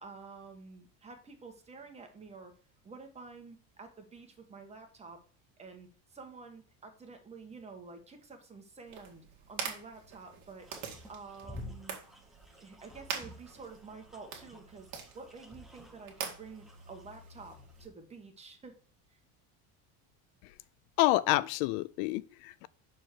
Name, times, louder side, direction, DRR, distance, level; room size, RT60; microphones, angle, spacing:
voice 1, 0.0-2.5 2.8-5.2 5.6-10.7 11.1-12.0 12.6-18.7 19.1-19.2, right 4 dB, 15° right, 1.4 m, -50 dB
sound 1, 8.9-17.9, right 7 dB, 45° right, 1.9 m, -45 dB
sound 2, 10.6-17.8, left 1 dB, ahead, 0.9 m, -52 dB
voice 2, 21.0-22.7, left 17 dB, 70° left, 0.5 m, -28 dB
6.0 x 4.6 x 6.3 m
cardioid pair, 150°, 40 cm